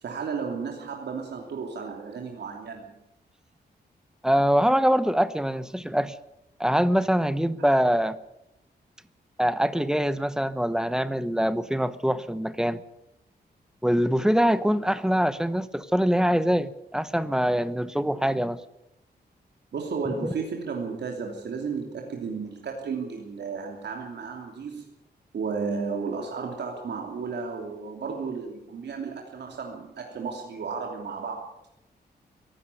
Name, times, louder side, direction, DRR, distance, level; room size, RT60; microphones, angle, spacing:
voice 1, 0.0-2.9 19.7-24.9 25.3-31.4, right 5 dB, 75° right, 1 dB, 3.0 m, -33 dB
voice 2, 4.2-6.1 6.6-8.2 9.4-12.8 13.8-18.6 20.2-20.3, equal, 5° right, 14 dB, 1.0 m, -24 dB
23.5 x 13.0 x 9.4 m, 0.89 s
wide cardioid pair, 150°, 18 cm